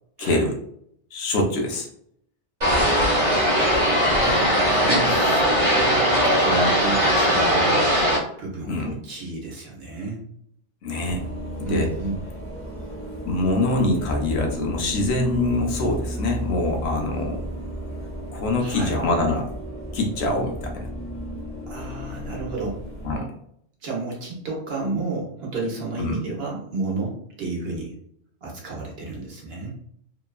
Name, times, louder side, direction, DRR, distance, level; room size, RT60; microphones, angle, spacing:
voice 1, 0.2-0.6 1.1-1.9 8.7-8.9 10.8-11.2 11.6-11.9 13.3-17.4 18.3-19.5 19.9-20.9 23.0-23.3 26.0-26.2, left 2 dB, 70° left, 1 dB, 0.8 m, -24 dB
sound 1, 2.6-8.2, equal, 35° right, 0.7 m, -19 dB
voice 2, 3.2-4.4 4.7-7.7 8.4-10.2 11.6-12.2 18.6-18.9 21.7-22.8 23.8-27.9 28.4-29.7, right 3 dB, 60° right, -2 dB, 1.0 m, -31 dB
sound 2, 11.1-23.2, equal, 15° left, 0.6 m, -33 dB
2.9 x 2.2 x 2.3 m, 0.69 s
omnidirectional pair, 1.2 m